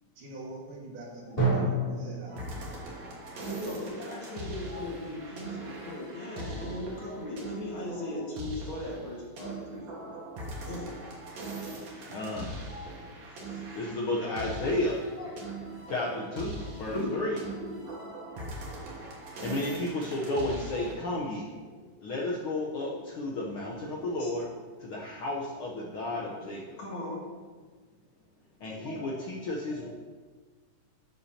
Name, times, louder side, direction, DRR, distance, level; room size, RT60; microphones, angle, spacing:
voice 1, 0.2-2.7, right 2 dB, 80° right, -4 dB, 3.5 m, -44 dB
Drum, 1.4-5.1, right 2 dB, 15° left, 2.4 m, -32 dB
sound 1, 2.3-20.9, right 1 dB, 60° right, 2.6 m, -41 dB
voice 2, 3.5-10.1 10.6-10.9 13.0-13.1 13.4-13.7 15.2-15.3 15.7-15.8 16.8-17.2 17.6-17.9 21.7-21.9 22.8-23.3 23.6-23.8 24.0-24.3 24.9-25.0 26.0-26.4 26.8-27.3 28.7-29.1 29.5-29.9, left 1 dB, 45° left, -4 dB, 2.1 m, -39 dB
voice 3, 12.1-12.6 13.7-15.0 15.9-17.3 19.4-21.5 22.0-24.5 24.8-26.6 28.6-29.9, left 2 dB, 85° left, -3 dB, 1.1 m, -32 dB
12.5 x 7.0 x 2.8 m, 1.4 s
omnidirectional pair, 3.7 m